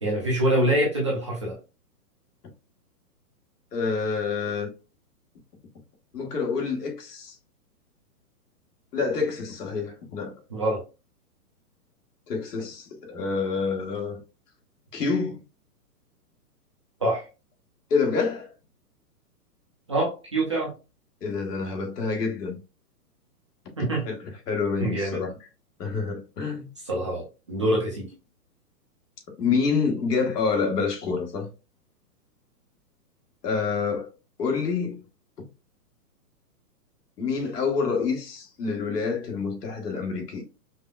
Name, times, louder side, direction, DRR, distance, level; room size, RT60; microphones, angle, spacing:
voice 1, 0.0-1.6 10.5-10.8 17.0-17.2 19.9-20.7 23.8-24.0 24.8-25.3 26.8-28.1, right 1 dB, 20° right, 0.5 m, -25 dB
voice 2, 3.7-4.7 6.1-7.3 8.9-10.3 12.3-14.2 14.9-15.4 17.9-18.5 21.2-22.6 24.0-24.2 24.5-25.3 25.8-26.7 29.4-31.5 33.4-34.1 34.4-35.0 37.2-40.4, left 5 dB, 75° left, 1.6 m, -27 dB
5.1 x 2.1 x 2.4 m
hypercardioid pair, 160°, 47 cm